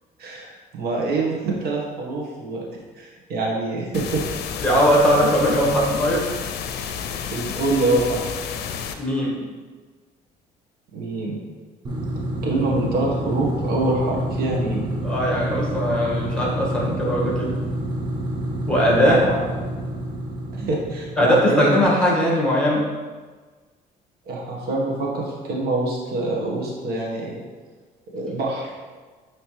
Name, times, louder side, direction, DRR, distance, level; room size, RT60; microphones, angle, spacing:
voice 1, 0.2-0.5 0.8-2.6 3.0-4.2 7.3-8.2 10.9-11.4 12.4-14.8 18.9-19.4 20.5-21.8 24.3-27.3 28.1-28.7, right 2 dB, 65° right, -3 dB, 1.4 m, -25 dB
sound 1, 3.9-8.9, left 7 dB, 75° left, 0.5 m, -31 dB
voice 2, 4.6-6.3 8.9-9.5 15.0-17.5 18.7-19.2 21.2-22.8, equal, 5° left, -4 dB, 1.8 m, -19 dB
sound 2, 11.8-21.6, right 1 dB, 25° right, 1.1 m, -28 dB
9.1 x 3.2 x 3.2 m, 1.4 s
cardioid pair, 110°, 17 cm